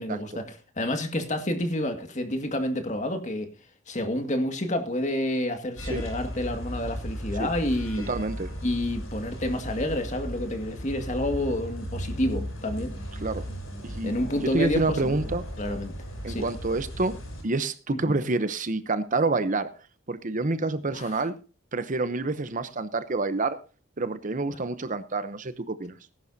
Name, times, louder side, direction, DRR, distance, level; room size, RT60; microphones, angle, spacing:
voice 1, 0.0-3.5 3.9-8.1 8.6-13.0 14.0-15.2 15.6-15.9 16.3-16.4 17.9-18.2 20.9-21.2, left 1 dB, 35° left, 2.0 m, -29 dB
sound 1, 5.8-17.4, equal, 85° left, 7.9 m, -36 dB
voice 2, 8.1-8.5 13.2-13.4 13.8-14.1 14.5-15.4 16.2-17.2 17.4-19.7 20.1-21.4 21.7-23.6 24.0-26.0, right 3 dB, 40° right, 0.8 m, -27 dB
18.5 x 11.0 x 2.8 m
head